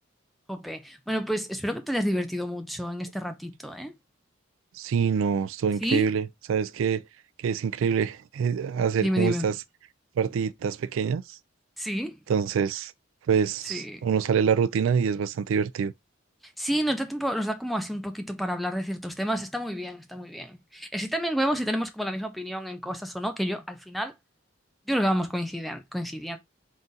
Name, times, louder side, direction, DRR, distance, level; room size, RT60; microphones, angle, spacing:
voice 1, 0.5-3.9 5.8-6.1 9.0-9.5 11.8-12.2 13.7-14.0 16.6-24.1 24.9-26.4, equal, ahead, 0.4 m, -29 dB
voice 2, 4.8-7.0 7.4-9.5 10.2-11.4 12.3-12.9 13.3-15.9, right 7 dB, 75° right, 0.3 m, -25 dB
4.0 x 2.4 x 3.8 m
head